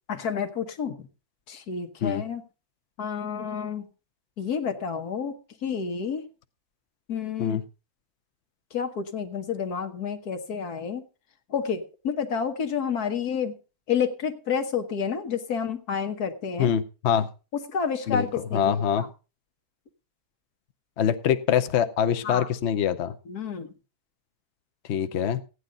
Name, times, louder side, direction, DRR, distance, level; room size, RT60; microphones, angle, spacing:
voice 1, 0.1-1.1 1.5-2.4 3.0-3.9 4.4-5.3 5.6-6.3 7.1-7.6 8.7-11.0 11.5-13.5 13.9-16.7 17.5-19.1 22.2-22.5 23.3-23.7, left 7 dB, 80° left, 7 dB, 1.7 m, -29 dB
voice 2, 16.6-17.3 18.1-18.3 18.5-19.0 21.0-23.1 24.9-25.4, left 9 dB, 55° left, 9 dB, 0.9 m, -24 dB
15.5 x 9.7 x 3.8 m, 0.32 s
omnidirectional pair, 1.6 m